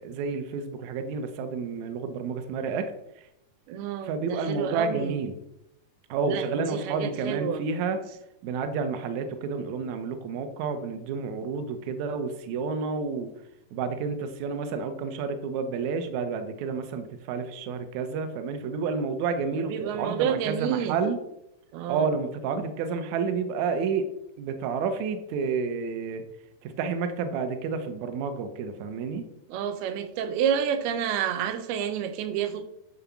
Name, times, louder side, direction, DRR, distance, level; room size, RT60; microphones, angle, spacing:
voice 1, 0.0-2.9 4.0-5.3 6.1-8.1 8.4-13.3 13.7-21.2 21.9-24.1 24.4-26.2 26.6-29.2, right 5 dB, 70° right, 1.8 m, -30 dB
voice 2, 3.7-5.2 6.3-7.6 19.6-21.0 21.7-22.1 29.5-32.7, right 8 dB, 90° right, 2.8 m, -29 dB
9.9 x 4.1 x 7.1 m
omnidirectional pair, 4.4 m